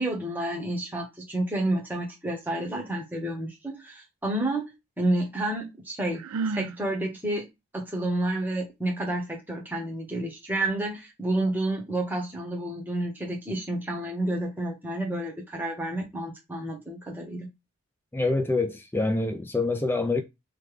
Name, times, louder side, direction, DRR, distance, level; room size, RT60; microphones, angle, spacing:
voice 1, 0.0-6.2 6.5-7.5 7.7-17.5, right 1 dB, 10° right, 1.0 m, -30 dB
Sigh, 6.1-6.8, right 4 dB, 85° right, 0.4 m, -30 dB
voice 2, 18.1-20.2, left 3 dB, 10° left, 0.3 m, -26 dB
3.3 x 2.2 x 3.3 m
head